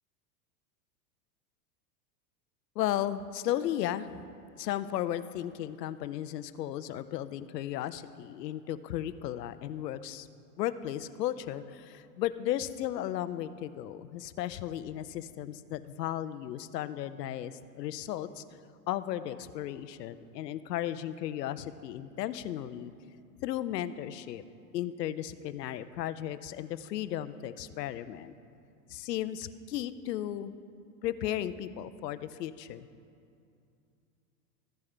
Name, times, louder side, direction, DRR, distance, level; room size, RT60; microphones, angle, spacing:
voice 1, 2.8-4.1 4.6-10.3 10.6-18.4 18.9-22.9 23.4-24.4 24.7-28.3 28.9-30.5 31.0-32.9, left 12 dB, 90° left, 13 dB, 0.6 m, -35 dB
15.0 x 7.1 x 3.3 m, 2.5 s
hypercardioid pair, 110°, 47 cm